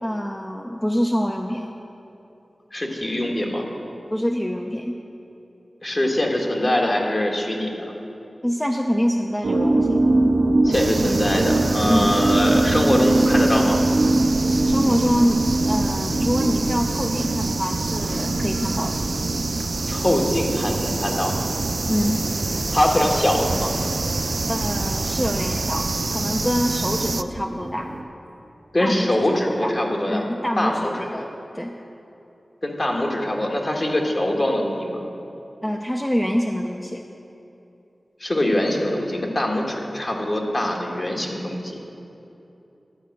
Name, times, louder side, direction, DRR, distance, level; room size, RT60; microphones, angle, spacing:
voice 1, 0.0-1.7 4.1-5.0 8.4-10.1 11.9-12.2 14.7-19.0 21.9-22.2 24.5-27.9 28.8-29.7 30.1-31.3 31.5-31.7 35.6-37.0, equal, 15° left, 2 dB, 0.6 m, -25 dB
voice 2, 2.7-3.7 5.8-7.8 10.6-13.8 19.9-21.3 22.7-23.7 28.7-30.2 30.6-31.1 32.6-35.0 38.2-41.8, left 1 dB, 45° left, 0 dB, 1.6 m, -23 dB
sound 1, 9.4-28.0, right 2 dB, 80° right, 0.7 m, -24 dB
sound 2, 10.7-27.2, right 3 dB, 65° right, 0.3 m, -27 dB
11.5 x 5.1 x 8.2 m, 2.9 s
cardioid pair, 40°, 0 cm